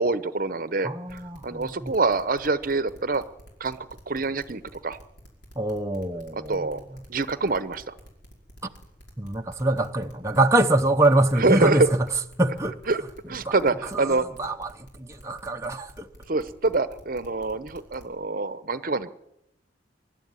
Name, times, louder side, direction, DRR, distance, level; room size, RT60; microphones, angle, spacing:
voice 1, 0.0-3.2 3.6-3.8 4.1-5.0 6.5-6.8 7.1-7.9 11.4-11.9 12.9-13.0 13.3-14.3 16.3-19.1, right 3 dB, 50° right, 0.9 m, -25 dB
voice 2, 0.8-1.9 5.6-7.0 8.6-8.7 9.2-12.1 12.4-12.8 13.4-13.6 13.9-16.1, right 1 dB, 15° right, 0.8 m, -24 dB
sound 1, 1.1-18.0, equal, 60° left, 5.3 m, -49 dB
24.0 x 11.5 x 9.6 m
head